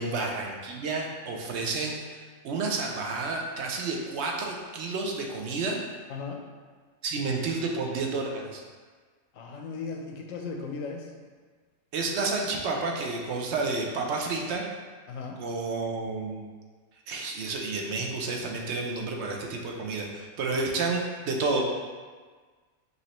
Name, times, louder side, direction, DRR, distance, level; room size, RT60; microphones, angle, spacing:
voice 1, 0.0-5.8 7.0-8.6 11.9-14.7 15.4-16.5 17.1-21.6, right 3 dB, 65° right, 1 dB, 0.8 m, -30 dB
voice 2, 6.1-6.4 9.3-11.1 15.1-15.4 20.5-20.6, left 4 dB, 85° left, 1 dB, 1.0 m, -37 dB
5.3 x 3.1 x 3.0 m, 1.5 s
omnidirectional pair, 1.4 m